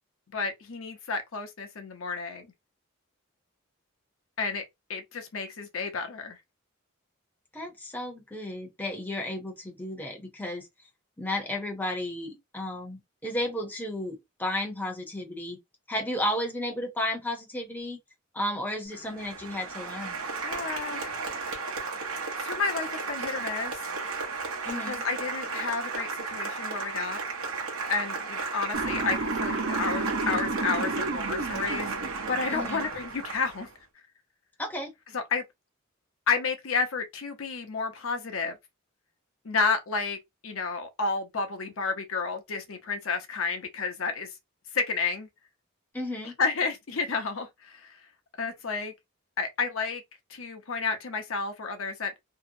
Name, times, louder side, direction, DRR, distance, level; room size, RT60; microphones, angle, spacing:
voice 1, 0.3-2.5 4.4-4.6 4.9-6.4 20.4-21.1 22.4-23.8 24.7-27.2 27.9-31.9 32.3-33.7 35.1-35.4 36.3-38.6 39.4-44.3 44.7-45.3 46.2-48.0 48.4-48.9 49.4-50.0 50.3-52.1, left 4 dB, 70° left, 0.6 m, -31 dB
voice 2, 7.5-10.7 11.2-15.6 15.9-18.0 18.3-20.2 24.6-25.0 32.5-32.9 34.6-34.9 45.9-46.4, left 1 dB, 10° left, 0.6 m, -33 dB
Applause, 18.9-33.7, right 4 dB, 80° right, 0.8 m, -34 dB
Motor vehicle (road) / Siren, 28.7-32.9, right 3 dB, 55° right, 0.4 m, -32 dB
2.7 x 2.0 x 2.6 m
head